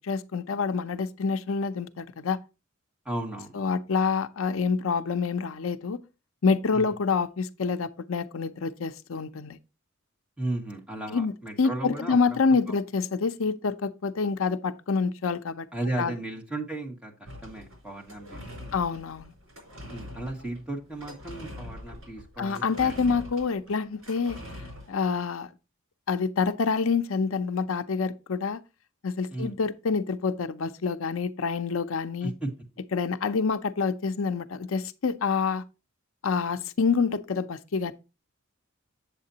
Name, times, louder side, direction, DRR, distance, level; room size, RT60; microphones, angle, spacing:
voice 1, 0.0-2.4 3.5-6.0 6.4-9.6 11.1-11.3 11.6-15.7 16.0-16.1 18.7-19.3 22.4-24.4 24.9-25.5 26.1-28.6 29.0-32.3 32.9-35.6 36.2-37.9, left 5 dB, 75° left, 0.6 m, -27 dB
voice 2, 3.1-3.6 6.7-6.9 10.4-12.4 15.7-18.8 19.9-22.9 29.3-29.5 32.2-32.5, right 2 dB, 5° right, 1.9 m, -35 dB
sound 1, 17.3-25.2, left 1 dB, 85° right, 4.4 m, -44 dB
8.3 x 7.3 x 2.8 m
head